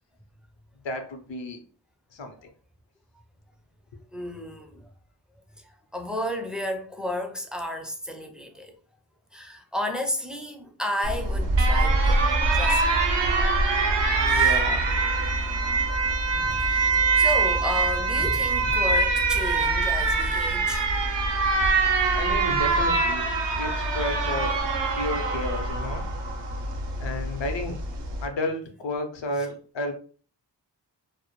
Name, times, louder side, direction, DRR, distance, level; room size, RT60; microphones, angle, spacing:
voice 1, 0.8-1.6 2.1-2.5 14.2-14.9 22.1-24.6 24.9-26.1 27.0-27.8 28.2-29.9, left 1 dB, 75° left, 0.6 m, -32 dB
voice 2, 4.1-4.9 5.6-8.7 9.3-12.3 12.5-13.0 14.3-14.6 15.8-20.9, left 1 dB, ahead, 0.3 m, -33 dB
Alarm, 11.0-28.3, right 3 dB, 70° right, 0.5 m, -24 dB
2.1 x 2.0 x 2.9 m
wide cardioid pair, 45°, 45 cm